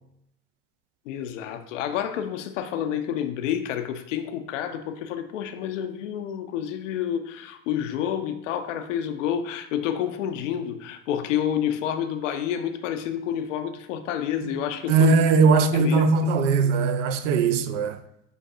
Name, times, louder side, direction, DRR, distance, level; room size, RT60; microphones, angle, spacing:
voice 1, 1.1-15.1 15.5-16.0, left 9 dB, 85° left, 0.5 m, -29 dB
voice 2, 14.9-18.0, right 4 dB, 80° right, 0.5 m, -20 dB
7.8 x 2.6 x 2.5 m
hypercardioid pair, 70°, 37 cm